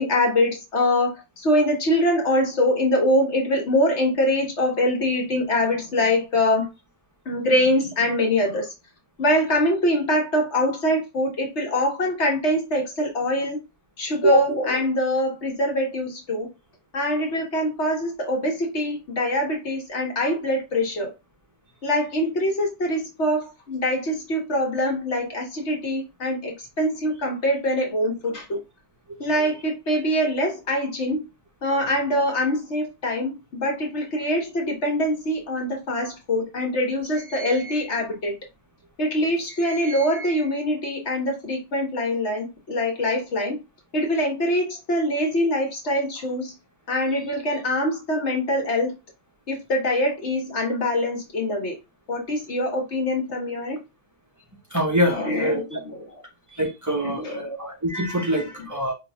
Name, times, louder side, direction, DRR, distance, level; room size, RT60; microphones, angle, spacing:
voice 1, 0.0-6.7 7.2-8.7 9.2-13.6 14.0-16.5 16.9-21.1 21.8-28.6 29.2-31.2 31.6-38.3 39.0-43.6 43.9-46.5 46.9-48.9 49.5-51.7 52.1-53.8 55.1-55.8 57.0-57.6, left 1 dB, 70° left, 1.7 m, -24 dB
voice 2, 54.7-55.8 56.5-58.9, equal, 15° right, 1.3 m, -24 dB
5.0 x 3.1 x 3.4 m
omnidirectional pair, 1.2 m